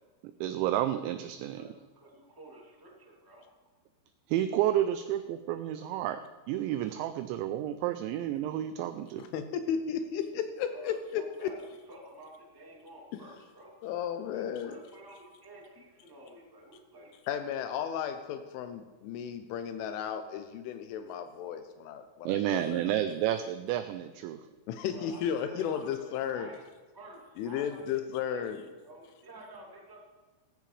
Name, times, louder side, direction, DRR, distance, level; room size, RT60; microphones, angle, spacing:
voice 1, 0.4-1.6 4.3-6.2 6.5-9.2 22.3-24.4, right 12 dB, 85° right, 9 dB, 2.7 m, -30 dB
voice 2, 1.5-3.4 10.0-10.1 10.7-13.7 14.3-17.1 24.9-26.6 26.9-28.0 28.3-28.5 28.8-30.0, right 1 dB, 10° right, -3 dB, 0.9 m, -51 dB
voice 3, 9.2-11.5 13.8-14.8 17.3-23.2 24.7-26.5 27.4-28.6, left 8 dB, 85° left, 8 dB, 3.1 m, -34 dB
16.5 x 15.5 x 3.3 m, 1.3 s
omnidirectional pair, 5.6 m